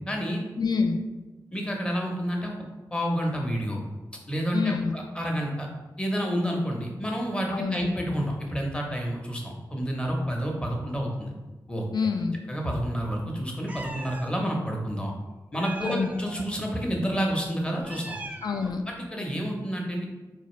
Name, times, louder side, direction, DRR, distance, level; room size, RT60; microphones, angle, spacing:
voice 1, 0.1-0.4 1.5-2.5 2.9-3.8 4.3-5.7 6.0-11.3 11.7-11.8 12.5-15.1 15.5-18.2 18.9-20.1, equal, 15° left, 0 dB, 0.7 m, -29 dB
voice 2, 0.6-1.0 4.5-4.9 7.5-7.8 11.9-12.4 15.8-16.1 18.4-18.8, left 5 dB, 70° left, 6 dB, 0.4 m, -26 dB
Meow, 13.7-14.3 15.6-16.5 17.7-18.8, right 2 dB, 20° right, 0.3 m, -40 dB
4.1 x 2.4 x 3.1 m, 1.2 s
wide cardioid pair, 70°, 7 cm